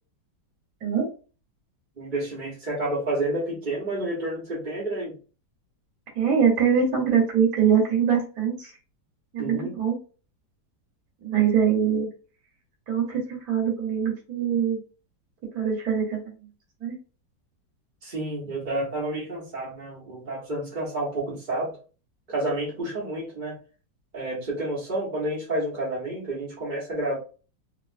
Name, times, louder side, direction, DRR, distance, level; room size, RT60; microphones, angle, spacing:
voice 1, 2.0-5.2 9.4-9.7 18.0-21.7 22.3-23.6 24.1-27.2, right 1 dB, 35° right, -6 dB, 0.9 m, -30 dB
voice 2, 6.1-8.7 9.3-10.0 11.2-12.1 12.9-14.8 15.5-16.2 16.8-17.0, right 7 dB, 55° right, -2 dB, 1.4 m, -23 dB
3.2 x 3.0 x 2.5 m, 0.36 s
omnidirectional pair, 2.0 m